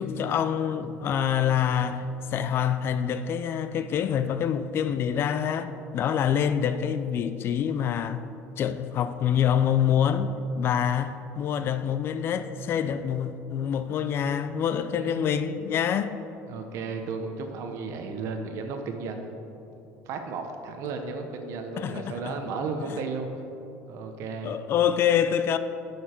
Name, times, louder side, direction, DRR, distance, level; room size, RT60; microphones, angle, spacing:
voice 1, 0.0-8.2 8.6-16.2 21.8-22.3 24.4-25.6, left 8 dB, 40° left, 0.4 m, -26 dB
voice 2, 15.0-15.3 16.5-19.4 20.1-23.3 23.9-24.7, right 4 dB, 60° right, 0.9 m, -34 dB
11.0 x 6.8 x 4.5 m
cardioid pair, 135°, 6 cm